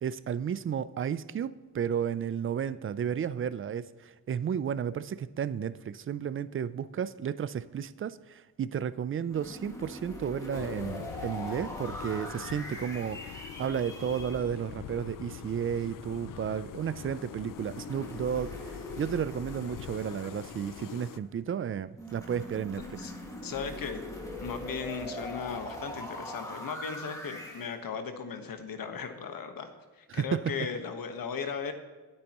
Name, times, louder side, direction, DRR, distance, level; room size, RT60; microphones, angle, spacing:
voice 1, 0.0-22.8 30.1-30.2, right 8 dB, 40° right, 16 dB, 0.4 m, -33 dB
sound 1, 9.3-14.4 17.5-21.3 22.0-27.7, left 1 dB, 10° left, 2.0 m, -42 dB
sound 2, 10.5-21.2, left 10 dB, 70° left, 0.5 m, -44 dB
voice 2, 23.4-24.0 24.4-31.7, left 6 dB, 85° left, 7 dB, 1.3 m, -37 dB
22.0 x 8.7 x 3.0 m, 1.3 s
wide cardioid pair, 170°, 33 cm